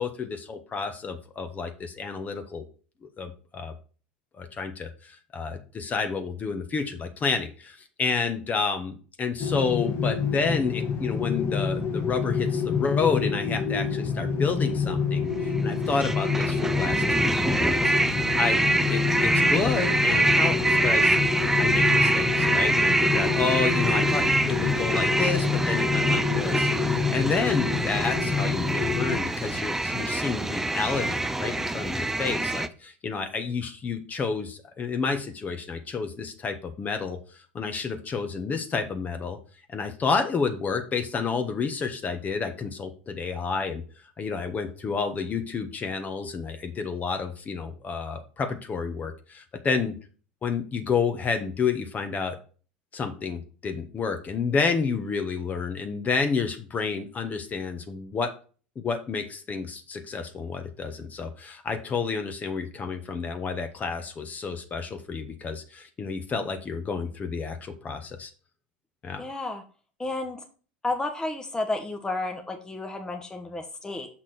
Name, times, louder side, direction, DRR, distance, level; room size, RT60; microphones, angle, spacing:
voice 1, 0.0-2.6 3.2-3.7 4.4-17.8 18.1-18.6 18.9-21.2 21.6-37.2 37.5-39.4 39.7-43.8 44.2-50.0 50.4-52.4 52.9-58.3 58.7-68.3 69.0-69.2, left 5 dB, 30° left, 7 dB, 1.4 m, -30 dB
sound 1, 9.4-29.2, left 5 dB, 45° left, 1.8 m, -27 dB
sound 2, 15.5-32.7, right 2 dB, 5° right, 0.6 m, -25 dB
voice 2, 69.2-69.6 70.0-70.4 70.8-74.1, left 2 dB, 10° left, 4 dB, 1.3 m, -31 dB
6.8 x 5.9 x 4.3 m, 0.38 s
hypercardioid pair, 80°, 5 cm